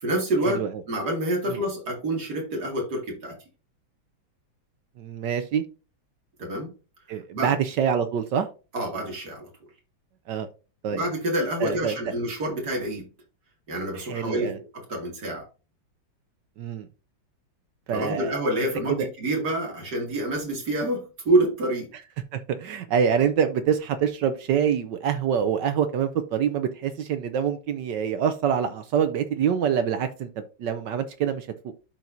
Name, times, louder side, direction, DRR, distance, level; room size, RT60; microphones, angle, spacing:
voice 1, 0.0-3.4 6.4-6.7 7.3-7.6 8.7-9.5 10.9-13.1 13.7-15.4 17.9-21.9, right 1 dB, 50° right, 0 dB, 2.8 m, -27 dB
voice 2, 5.0-5.6 7.1-8.5 10.3-10.5 10.8-11.0 11.6-12.0 13.9-14.6 16.6-16.9 17.9-18.3 18.9-19.1 22.3-31.5, right 8 dB, 70° right, 10 dB, 1.2 m, -25 dB
12.0 x 4.5 x 2.7 m, 0.32 s
omnidirectional pair, 2.2 m